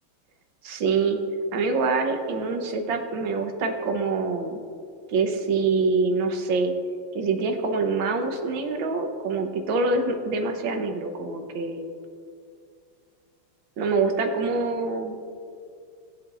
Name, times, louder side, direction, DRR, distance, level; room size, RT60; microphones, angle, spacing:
voice 1, 0.6-1.2 1.5-4.6 5.1-6.7 7.1-11.9 13.8-15.2, right 4 dB, 70° right, 4 dB, 1.7 m, -25 dB
18.5 x 7.8 x 2.5 m, 2.3 s
omnidirectional pair, 2.3 m